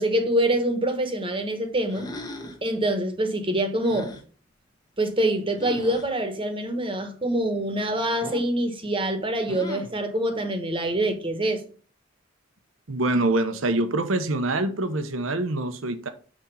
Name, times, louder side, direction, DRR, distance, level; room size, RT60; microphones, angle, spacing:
voice 1, 0.0-2.1 2.6-4.1 5.0-11.6, right 1 dB, 25° right, 1.2 m, -25 dB
sound 1, 1.9-2.7 3.8-4.2 5.6-6.1 8.2-8.6 9.5-10.0, left 1 dB, 20° left, 1.0 m, -38 dB
voice 2, 12.9-16.1, right 2 dB, 75° right, 0.9 m, -25 dB
6.2 x 4.4 x 5.7 m
head